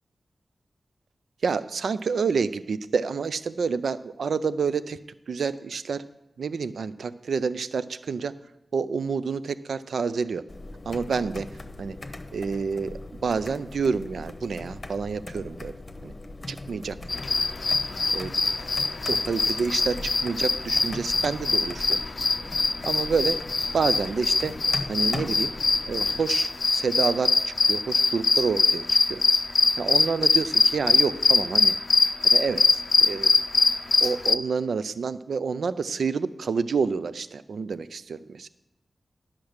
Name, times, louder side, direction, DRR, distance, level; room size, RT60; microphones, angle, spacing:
voice 1, 1.4-5.0 5.3-6.0 6.4-8.3 8.7-10.4 10.9-11.5 11.8-12.0 12.3-12.9 13.2-15.7 16.0-16.1 16.5-17.0 18.1-18.3 19.1-22.0 22.8-23.4 23.7-24.5 24.9-25.5 25.9-29.2 29.8-31.7 32.3-33.3 34.0-38.5, right 5 dB, 90° right, 14 dB, 0.4 m, -28 dB
sound 1, 10.5-26.3, left 2 dB, 40° left, 0.8 m, -40 dB
sound 2, 17.1-34.3, left 3 dB, 55° left, 0.5 m, -23 dB
10.5 x 5.9 x 6.4 m, 0.91 s
cardioid pair, 60°, 0 cm